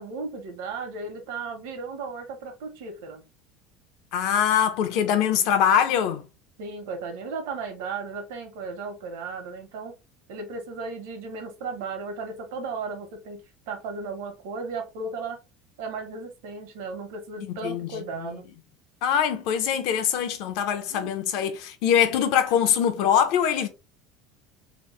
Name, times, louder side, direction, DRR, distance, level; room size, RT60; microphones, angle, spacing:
voice 1, 0.0-3.2 6.6-9.9 10.3-13.4 13.7-15.4 15.8-18.4 20.9-21.1, right 4 dB, 80° right, 1.1 m, -35 dB
voice 2, 4.1-6.2 17.5-17.9 19.0-23.7, left 9 dB, 55° left, 0.6 m, -23 dB
3.0 x 2.0 x 3.1 m
cardioid pair, 170°, 0 cm